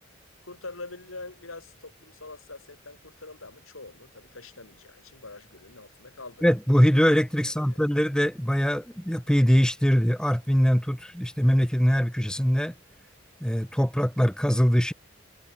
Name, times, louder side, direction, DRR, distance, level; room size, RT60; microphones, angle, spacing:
voice 1, 0.4-6.4 7.4-7.8, left 3 dB, 80° left, 3.6 m, -44 dB
voice 2, 6.4-12.7 13.4-14.9, equal, 5° left, 1.2 m, -22 dB
head